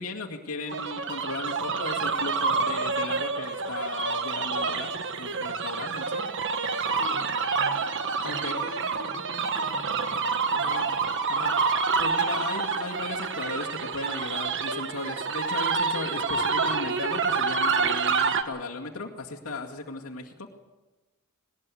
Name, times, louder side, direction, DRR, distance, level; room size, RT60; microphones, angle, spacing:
voice 1, 0.0-4.9 5.2-6.2 8.2-8.6 10.6-10.9 11.3-11.5 12.0-20.6, left 3 dB, 80° left, -2 dB, 2.2 m, -36 dB
sound 1, 0.7-18.4, right 4 dB, 60° right, 1.4 m, -28 dB
voice 2, 7.0-7.9 8.2-10.8, right 1 dB, 50° left, 1 dB, 2.7 m, -45 dB
20.0 x 19.0 x 8.5 m, 1.2 s
head